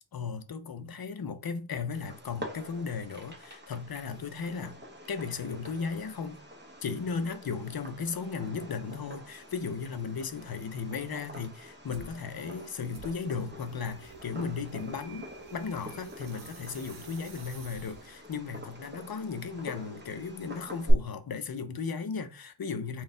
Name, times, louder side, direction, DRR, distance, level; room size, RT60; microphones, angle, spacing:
voice 1, 0.1-4.8 5.1-6.4 6.8-23.0, left 5 dB, 50° left, 0.6 m, -36 dB
Fireworks, 1.9-20.9, equal, 25° right, 1.0 m, -44 dB
sound 1, 11.9-12.2 12.9-18.3, right 3 dB, 70° right, 0.8 m, -50 dB
4.0 x 2.3 x 3.7 m
wide cardioid pair, 75°, 46 cm